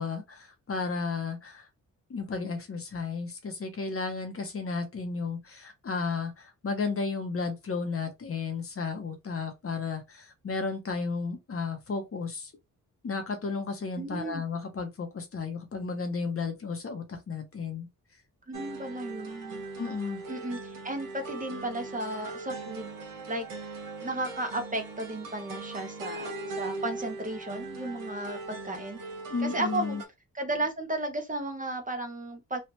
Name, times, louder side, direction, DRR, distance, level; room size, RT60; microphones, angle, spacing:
voice 1, 0.0-1.7 2.1-12.5 13.0-17.9 19.8-20.2 29.3-30.0, left 4 dB, 45° left, 0.9 m, -33 dB
voice 2, 14.0-14.4 18.5-19.6 20.3-22.9 23.3-23.5 24.0-29.0 29.4-30.0 30.3-32.6, right 1 dB, 25° right, 0.8 m, -34 dB
sound 1, 18.5-30.1, right 3 dB, 85° right, 1.2 m, -40 dB
3.2 x 2.4 x 2.9 m
wide cardioid pair, 105°, 32 cm